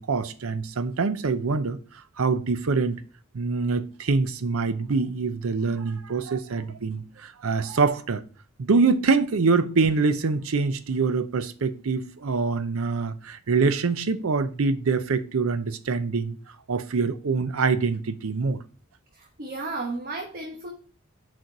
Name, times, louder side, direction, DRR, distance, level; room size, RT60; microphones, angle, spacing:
voice 1, 0.0-1.8 2.2-3.0 3.3-8.2 8.6-16.4 16.7-18.6, right 4 dB, 75° right, 0.6 m, -25 dB
voice 2, 19.1-20.7, right 3 dB, 45° right, 1.0 m, -33 dB
6.5 x 4.4 x 4.6 m
head